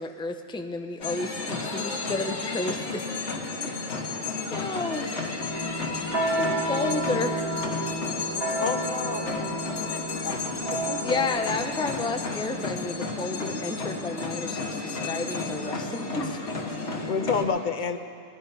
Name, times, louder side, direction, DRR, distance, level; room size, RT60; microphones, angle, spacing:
voice 1, 0.0-3.0 3.5-3.7 4.5-5.1 6.4-7.4 11.0-16.4, left 3 dB, 5° left, 6 dB, 0.5 m, -31 dB
sound 1, 1.0-17.4, left 3 dB, 90° left, 1.8 m, -32 dB
voice 2, 1.6-3.0 3.3-3.8 4.1-4.8 6.5-8.6 8.9-10.6 16.7-17.0, right 1 dB, 65° right, -7 dB, 3.6 m, -47 dB
sound 2, 5.4-12.9, right 1 dB, 35° right, 1.4 m, -32 dB
voice 3, 8.6-9.5 9.8-11.2 11.5-11.6 17.1-18.0, left 5 dB, 50° left, 8 dB, 0.8 m, -30 dB
18.5 x 11.0 x 5.6 m, 2.2 s
omnidirectional pair, 1.1 m